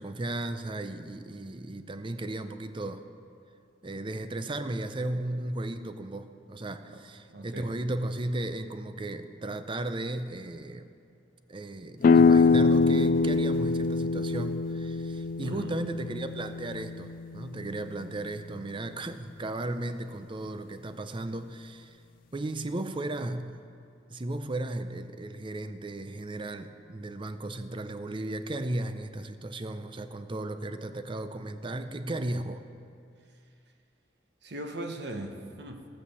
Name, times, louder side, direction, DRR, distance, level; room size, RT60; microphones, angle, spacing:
voice 1, 0.0-3.0 3.8-10.9 11.5-22.0 22.3-23.6 24.1-32.6, right 2 dB, 30° right, 10 dB, 0.5 m, -35 dB
voice 2, 7.3-7.8 15.4-15.8 34.4-35.9, right 1 dB, 65° right, 4 dB, 1.1 m, -39 dB
sound 1, 12.0-17.6, left 4 dB, 50° left, 0.3 m, -24 dB
16.5 x 6.5 x 7.0 m, 2.4 s
head